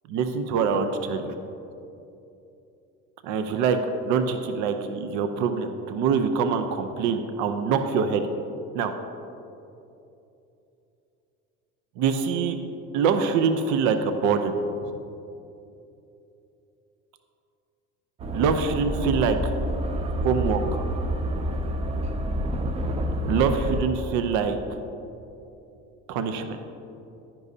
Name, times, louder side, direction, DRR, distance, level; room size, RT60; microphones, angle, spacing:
voice 1, 0.1-1.3 3.2-3.8 4.0-8.2 8.7-8.9 12.0-12.6 12.9-14.5 18.3-19.4 20.2-20.8 23.3-24.6 26.1-26.6, right 6 dB, 80° right, 8 dB, 0.7 m, -24 dB
sound 1, 18.2-23.8, right 1 dB, 20° right, 0.4 m, -28 dB
11.0 x 10.0 x 2.7 m, 2.8 s
cardioid pair, 180°, 29 cm